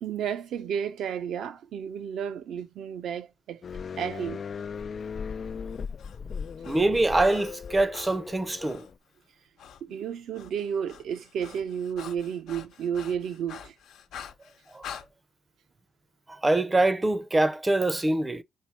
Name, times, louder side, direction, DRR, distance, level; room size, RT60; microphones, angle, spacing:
voice 1, 0.0-3.6 4.0-4.4 9.9-13.7, right 8 dB, 75° right, 0.8 m, -32 dB
sound 1, 3.6-9.0, left 6 dB, 45° left, 0.3 m, -37 dB
Breathing, 5.7-8.9 9.6-9.8 10.1-15.1, left 8 dB, 80° left, 0.9 m, -46 dB
voice 2, 6.6-8.9 14.7-14.8 16.3-18.4, right 2 dB, 15° right, 0.6 m, -24 dB
5.1 x 4.6 x 5.7 m
cardioid pair, 90°, 0 cm